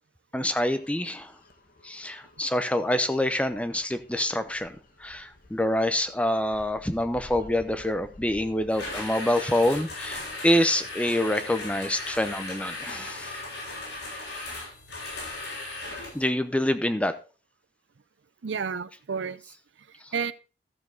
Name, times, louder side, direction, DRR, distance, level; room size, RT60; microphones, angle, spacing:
voice 1, 0.3-1.3 1.8-13.3 16.1-17.1, left 1 dB, 5° left, 10 dB, 0.7 m, -26 dB
sound 1, 0.6-8.7, left 1 dB, 50° left, 1.3 m, -52 dB
sound 2, 8.7-16.3, left 2 dB, 85° left, 6.8 m, -37 dB
voice 2, 18.4-20.3, right 6 dB, 80° right, 16 dB, 0.5 m, -32 dB
13.5 x 7.1 x 4.0 m, 0.34 s
head